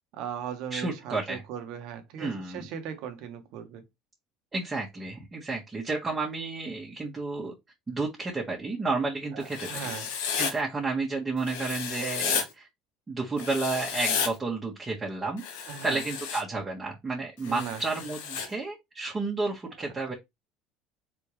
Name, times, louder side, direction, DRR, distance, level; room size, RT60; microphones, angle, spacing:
voice 1, 0.1-3.8 9.3-10.1 15.6-16.0 17.5-17.8, right 8 dB, 65° right, 1.3 m, -38 dB
voice 2, 0.7-1.4 2.2-2.7 4.5-7.5 7.9-9.9 10.3-12.7 13.1-15.4 15.8-20.1, right 3 dB, 20° right, 1.7 m, -31 dB
Writing, 9.5-10.5 11.5-12.4 13.4-14.3 15.4-16.4 17.4-18.5, left 6 dB, 90° left, 1.5 m, -32 dB
4.2 x 3.6 x 3.2 m
supercardioid pair, 105°, 0 cm